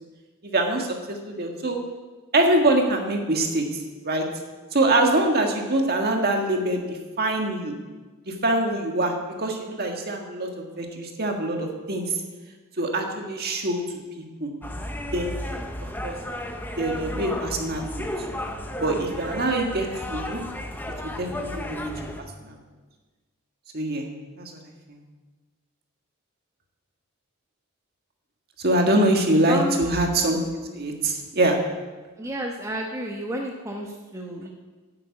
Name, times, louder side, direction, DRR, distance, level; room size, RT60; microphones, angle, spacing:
voice 1, 0.4-1.8 2.3-4.3 4.7-7.7 8.3-12.2 12.8-13.8 14.2-14.5 15.1-15.3 16.0-16.2 16.8-18.1 18.8-20.4 21.0-21.9 22.4-22.6 23.7-24.0 24.4-24.6 24.9-25.0 28.6-30.4 30.7-31.6, right 1 dB, 45° right, 2 dB, 1.7 m, -24 dB
sound 1, 14.6-22.2, left 1 dB, 10° left, 0.8 m, -33 dB
voice 2, 29.5-29.9 32.2-34.5, equal, 15° right, 0 dB, 1.1 m, -31 dB
9.8 x 8.8 x 8.5 m, 1.3 s
head